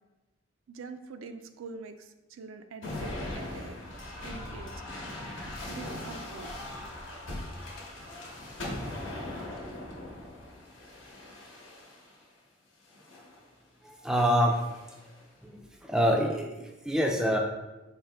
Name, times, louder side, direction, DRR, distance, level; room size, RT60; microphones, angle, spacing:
voice 1, 0.7-3.8 4.2-4.7 5.7-6.6, right 4 dB, 80° right, 8 dB, 0.4 m, -44 dB
sound 1, 2.8-12.2 12.9-13.4 14.5-15.2, left 1 dB, 70° left, 1.0 m, -40 dB
voice 2, 13.8-14.8 15.4-17.4, equal, 5° right, 1 dB, 0.3 m, -26 dB
4.9 x 2.6 x 3.4 m, 1.1 s
head